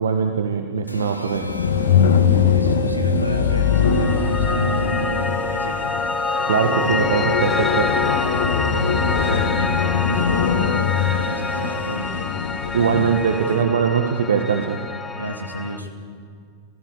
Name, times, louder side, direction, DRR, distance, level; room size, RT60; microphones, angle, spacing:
voice 1, 0.0-1.4 6.5-7.9 12.7-14.8, right 6 dB, 65° right, 6 dB, 1.5 m, -21 dB
sound 1, 0.9-12.3, right 1 dB, 85° left, 1.8 m, -32 dB
sound 2, 1.3-13.3, left 7 dB, 65° left, 1.6 m, -22 dB
voice 2, 2.3-5.8 8.6-12.2 15.2-15.9, right 1 dB, 90° right, 5 dB, 2.5 m, -32 dB
Piano, 3.4-15.8, left 4 dB, 10° left, 1.6 m, -27 dB
30.0 x 16.5 x 8.4 m, 2.3 s
figure-of-eight pair, 90°, 0 cm